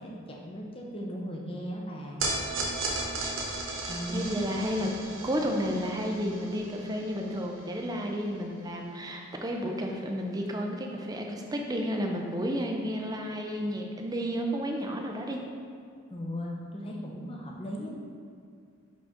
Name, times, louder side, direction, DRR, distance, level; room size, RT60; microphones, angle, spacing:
voice 1, 0.0-2.4 3.9-4.4 16.1-18.0, equal, 25° left, -1 dB, 0.7 m, -37 dB
sound 1, 2.2-8.6, right 2 dB, 70° right, 1.0 m, -36 dB
voice 2, 4.1-15.4, equal, 20° right, 2 dB, 0.5 m, -32 dB
5.4 x 5.2 x 3.6 m, 2.3 s
head